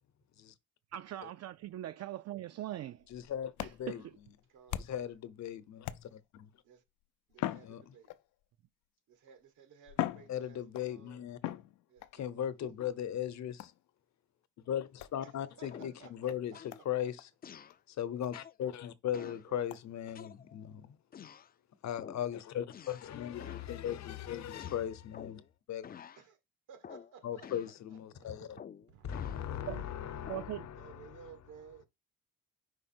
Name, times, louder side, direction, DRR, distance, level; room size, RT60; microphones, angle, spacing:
voice 1, 0.9-3.0 3.6-4.0 29.6-29.8 30.3-30.7, right 14 dB, 60° right, 0.5 m, -41 dB
sound 1, 3.0-5.2 5.8-6.4 7.3-8.4 9.3-9.4 9.9-10.9 11.4-12.2 13.6-13.9 15.0-15.2 15.8-15.9 16.3-16.4 16.7-16.9 17.2-17.3 17.7-17.8 18.2-18.3 18.7-18.8 19.7-19.8, left 14 dB, 90° left, 0.6 m, -40 dB
voice 2, 3.1-3.5 3.8-4.0 4.8-5.9 7.6-7.8 10.3-11.4 12.1-13.7 14.7-17.3 17.9-21.0 21.8-25.4 25.7-25.9 27.2-28.6 29.0-31.2, left 10 dB, 65° left, 0.9 m, -38 dB
voice 3, 4.5-5.1 6.7-6.8 7.3-8.1 9.1-11.3 11.9-12.6 15.2-16.9 19.1-19.7 23.2-23.9 26.2-26.4 26.7-28.3 28.9-31.9, right 7 dB, 90° right, 1.5 m, -57 dB
sound 2, 15.7-16.1 16.5-16.8 17.4-17.8 18.3-18.6 19.1-19.5 20.1-20.7 21.1-21.5 22.0-22.3 22.7-23.1 23.4-23.7 24.6-25.5 25.8-26.2 26.8-27.1 27.4-27.8 28.6-29.4 30.3-30.6, left 8 dB, 30° left, 0.4 m, -50 dB
4.9 x 4.9 x 4.4 m
cardioid pair, 90°, 30 cm